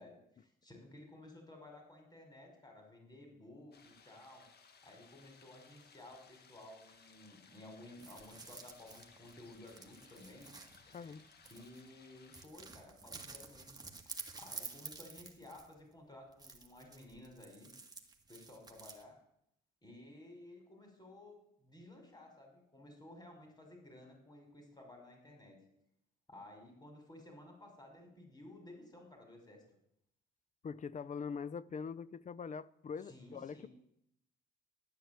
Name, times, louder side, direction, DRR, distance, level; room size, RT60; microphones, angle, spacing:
voice 1, 0.0-4.5 4.8-10.5 10.8-11.1 11.5-13.8 14.0-14.1 14.4-17.7 18.3-19.2 19.8-25.6 26.3-29.6 33.1-33.7, left 1 dB, 20° left, 5.5 m, -55 dB
sound 1, 3.7-12.5, left 5 dB, 55° left, 1.7 m, -63 dB
sound 2, 8.0-11.9 12.3-15.8 16.3-19.0, right 3 dB, 20° right, 1.9 m, -51 dB
voice 2, 10.9-11.3 30.6-33.7, left 6 dB, 40° left, 0.5 m, -43 dB
12.0 x 9.2 x 8.6 m
cardioid pair, 90°, 20 cm